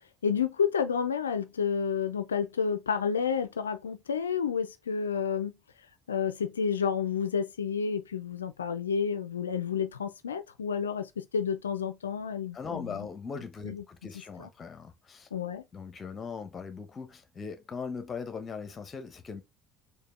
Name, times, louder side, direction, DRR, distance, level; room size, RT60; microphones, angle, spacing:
voice 1, 0.2-5.6 6.1-13.1 13.6-13.8 14.4-14.5 15.3-15.6, left 6 dB, 90° left, 0.4 m, -30 dB
voice 2, 12.5-15.3 15.7-19.4, left 5 dB, 35° left, 1.0 m, -40 dB
4.5 x 2.7 x 3.2 m
hypercardioid pair, 65°, 0 cm